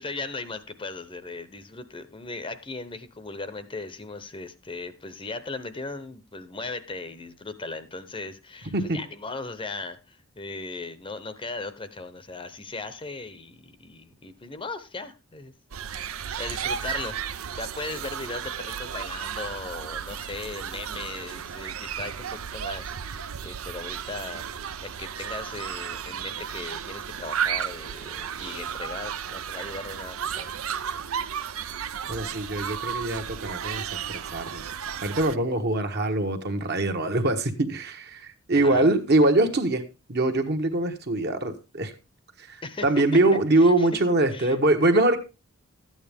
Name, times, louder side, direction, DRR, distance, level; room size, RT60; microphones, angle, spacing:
voice 1, 0.0-15.5 16.4-17.2 17.5-24.4 24.8-30.6 38.5-38.9 42.6-42.9 43.6-43.9 44.3-44.6, left 3 dB, 25° left, 12 dB, 0.8 m, -38 dB
sound 1, 15.7-35.4, right 8 dB, 85° right, 0.6 m, -34 dB
voice 2, 32.1-34.6 35.0-39.8 40.1-41.9 42.4-42.6 42.8-45.2, right 2 dB, 50° right, 5 dB, 1.3 m, -23 dB
12.5 x 8.9 x 3.5 m, 0.29 s
head